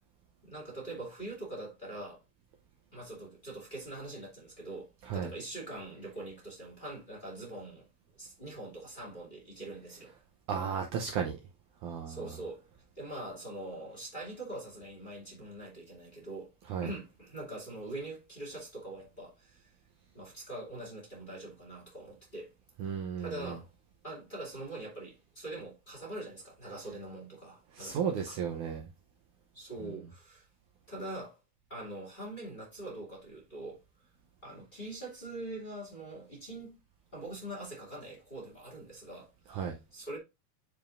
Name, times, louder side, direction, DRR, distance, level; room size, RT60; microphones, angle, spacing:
voice 1, 0.4-2.2 2.9-7.9 8.2-10.1 12.1-12.7 13.0-16.5 16.8-19.7 20.1-22.5 23.2-23.7 24.0-28.4 29.5-30.5 30.9-31.4 31.7-33.8 34.4-36.7 37.1-40.2, right 2 dB, 15° left, 2.3 m, -43 dB
voice 2, 10.5-11.4 11.8-12.2 16.7-16.9 22.8-23.6 27.7-28.9 29.8-29.9 39.5-39.8, right 7 dB, 70° right, 2.0 m, -34 dB
9.0 x 4.9 x 2.6 m
omnidirectional pair, 4.2 m